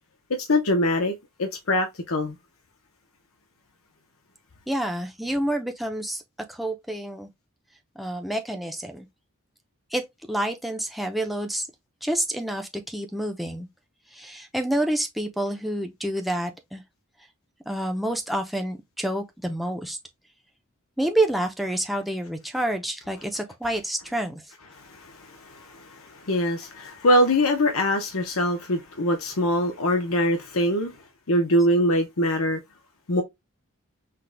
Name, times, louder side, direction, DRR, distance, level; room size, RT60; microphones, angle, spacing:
voice 1, 0.5-1.1 1.4-2.3 25.0-30.9 31.3-32.6 33.1-33.2, left 1 dB, 75° left, 0.9 m, -23 dB
voice 2, 4.7-6.2 6.5-7.3 8.0-9.1 9.9-10.0 10.3-11.7 12.0-13.7 14.1-16.8 17.7-20.0 21.0-24.5, right 1 dB, ahead, 0.6 m, -28 dB
5.9 x 2.3 x 3.4 m
head